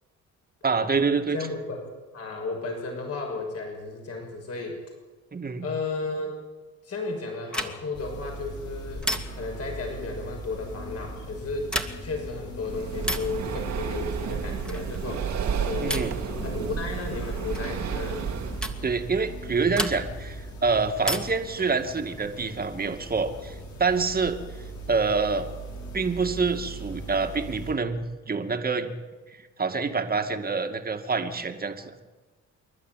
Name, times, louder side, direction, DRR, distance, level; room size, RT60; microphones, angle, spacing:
voice 1, 0.6-1.5 5.3-5.7 15.8-16.2 18.8-24.4 24.9-25.5 25.9-28.9 29.3-31.9, right 4 dB, 30° right, 6 dB, 2.3 m, -26 dB
voice 2, 1.3-4.8 5.6-6.4 6.8-11.7 12.0-16.1 16.4-18.4, left 3 dB, 55° left, 2 dB, 6.2 m, -34 dB
sound 1, 7.5-8.0 9.0-9.6 11.6-12.2 13.0-13.4 14.7-15.0 15.9-16.2 17.5-17.8 18.6-18.8 19.7-20.3 21.0-21.5 23.0-23.7, equal, 5° left, 2.3 m, -32 dB
sound 2, 7.9-27.7, right 1 dB, 70° left, 6.7 m, -39 dB
Breathing, 12.6-18.8, right 7 dB, 65° right, 2.4 m, -32 dB
27.0 x 11.5 x 9.4 m, 1.3 s
cardioid pair, 90°, 30 cm